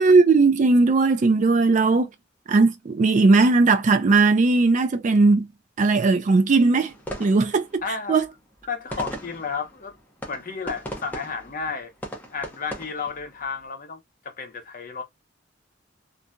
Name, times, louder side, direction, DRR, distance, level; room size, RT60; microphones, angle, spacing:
voice 1, 0.0-2.1 2.5-5.5 5.8-6.9 7.2-7.7 8.1-8.2, right 3 dB, 40° right, 0.4 m, -18 dB
sound 1, 6.9-13.6, equal, 10° left, 0.8 m, -39 dB
voice 2, 7.8-8.2 8.7-10.0 10.3-11.9 12.3-14.0 14.2-15.0, left 5 dB, 45° left, 0.8 m, -32 dB
2.7 x 2.6 x 2.3 m
head